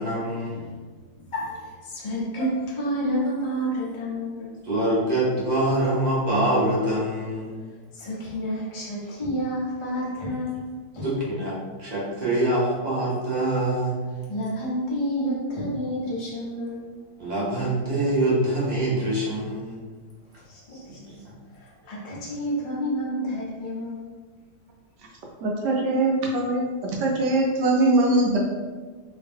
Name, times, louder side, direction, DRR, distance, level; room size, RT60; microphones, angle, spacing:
voice 1, 0.0-0.6 4.6-7.5 11.0-13.9 17.2-19.8 20.9-21.0, right 1 dB, 35° right, -7 dB, 0.7 m, -24 dB
voice 2, 0.5-4.5 7.6-11.1 14.1-17.0 20.4-21.2 21.5-24.1, equal, 35° left, -6 dB, 0.5 m, -30 dB
voice 3, 25.4-28.4, right 2 dB, 75° right, -1 dB, 1.1 m, -22 dB
2.9 x 2.8 x 3.5 m, 1.4 s
omnidirectional pair, 1.9 m